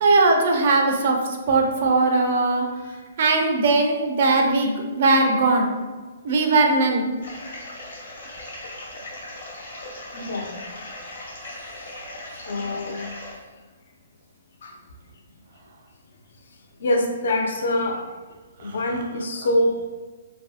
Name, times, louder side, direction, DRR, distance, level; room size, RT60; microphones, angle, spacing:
voice 1, 0.0-1.2 1.5-2.7 3.2-5.7 6.2-7.0 18.6-18.8, right 3 dB, 45° right, 2 dB, 0.4 m, -19 dB
sound 1, 7.2-13.3, left 1 dB, 80° left, 0.9 m, -38 dB
voice 2, 10.1-10.5 12.5-13.0 14.6-14.8 16.8-18.0 18.6-19.8, left 1 dB, 60° left, 2 dB, 0.4 m, -24 dB
2.6 x 2.5 x 2.4 m, 1.4 s
hypercardioid pair, 170°, 0 cm